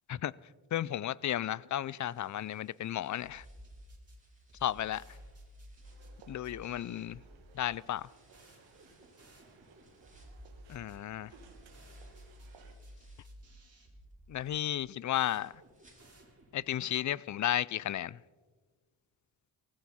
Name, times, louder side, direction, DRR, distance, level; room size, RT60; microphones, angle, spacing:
voice 1, 0.7-3.4 4.6-5.0 6.3-7.2 7.5-8.1 10.7-11.3 14.3-15.5 16.5-18.2, left 12 dB, 40° left, 0.4 m, -33 dB
sound 1, 1.7-7.0 7.5-13.5 13.9-16.5 16.8-16.9 17.4-17.5, right 1 dB, 15° right, 4.5 m, -70 dB
sound 2, 3.2-16.8, equal, 30° right, 3.9 m, -55 dB
sound 3, 5.8-12.7, right 4 dB, 85° right, 2.1 m, -61 dB
18.5 x 15.5 x 4.2 m
cardioid pair, 60°, 46 cm